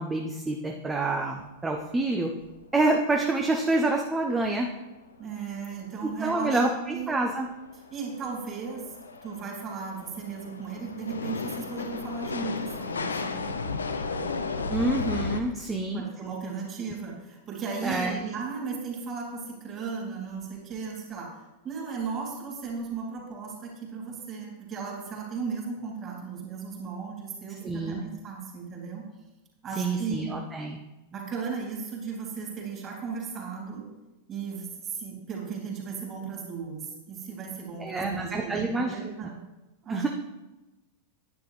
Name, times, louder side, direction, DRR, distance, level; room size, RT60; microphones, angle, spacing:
voice 1, 0.0-2.3 2.7-4.7 6.0-7.5 14.7-16.0 17.8-18.2 27.6-28.0 29.8-30.8 37.8-38.9 39.2-39.3 39.9-40.1, right 2 dB, 15° right, 2 dB, 0.8 m, -27 dB
sound 1, 1.1-1.2 1.4-1.5 1.8-2.0 2.4-2.5 5.6-5.7 6.2-15.4, left 4 dB, 75° left, 0.6 m, -34 dB
voice 2, 5.2-6.6 6.9-7.2 7.9-8.9 9.2-13.5 15.9-21.4 21.6-29.1 29.6-30.3 31.1-33.9 34.3-39.3 39.8-40.1, right 5 dB, 30° right, -2 dB, 3.4 m, -36 dB
10.5 x 9.4 x 3.3 m, 1.0 s
figure-of-eight pair, 90°, 0 cm